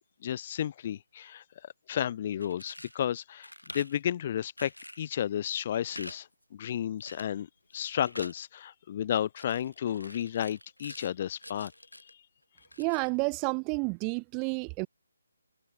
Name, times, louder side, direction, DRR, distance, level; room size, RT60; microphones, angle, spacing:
voice 1, 0.0-3.5 3.7-7.5 7.7-11.7 12.0-12.2, left 10 dB, 35° left, 1.0 m, -33 dB
sound 1, 2.4-3.0 3.4-4.0 4.6-5.1 5.9-6.2 6.4-6.5 7.0-7.4 7.7-8.4 9.4-11.1 11.4-12.1 12.6-13.2, left 1 dB, 85° left, 3.7 m, -47 dB
voice 2, 12.8-14.9, right 38 dB, 20° right, 0.5 m, -30 dB
figure-of-eight pair, 145°, 0 cm